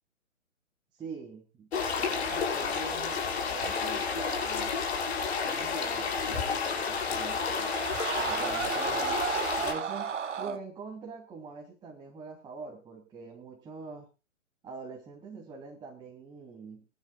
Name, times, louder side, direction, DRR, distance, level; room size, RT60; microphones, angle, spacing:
voice 1, 1.0-4.7 5.4-7.7 8.2-9.2 9.6-14.1 14.6-16.9, right 4 dB, 10° right, -2 dB, 3.1 m, -44 dB
sound 1, 1.7-9.7, left 5 dB, 55° left, 6.8 m, -31 dB
sound 2, 6.1-10.6, right 7 dB, 65° right, 1.5 m, -35 dB
23.0 x 12.5 x 2.4 m, 0.29 s
figure-of-eight pair, 135°, 40 cm